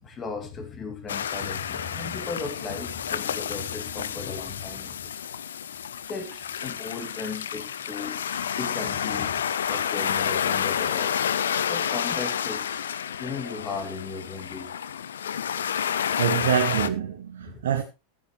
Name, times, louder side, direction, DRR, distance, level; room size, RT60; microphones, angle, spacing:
voice 1, 0.0-5.1 6.1-8.2 8.5-11.2 11.7-12.8 13.2-14.7 16.3-16.5 17.5-17.7, left 4 dB, 20° left, 2.6 m, -36 dB
sound 1, 1.1-16.9, left 8 dB, 65° left, 0.7 m, -30 dB
voice 2, 16.2-17.8, right 9 dB, 60° right, 1.4 m, -25 dB
14.0 x 10.5 x 3.3 m
figure-of-eight pair, 90°, 0 cm